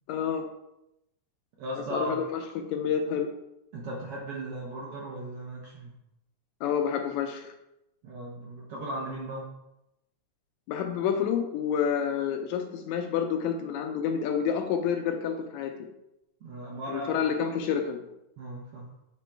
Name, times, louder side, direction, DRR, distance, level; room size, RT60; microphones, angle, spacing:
voice 1, 0.1-0.5 1.9-3.3 6.6-7.5 10.7-15.7 16.9-18.0, left 7 dB, 80° left, 5 dB, 1.8 m, -29 dB
voice 2, 1.6-2.1 3.7-5.9 8.0-9.5 16.4-17.2 18.4-18.9, right 1 dB, 70° right, -3 dB, 1.4 m, -37 dB
7.6 x 2.9 x 4.4 m, 0.86 s
omnidirectional pair, 3.5 m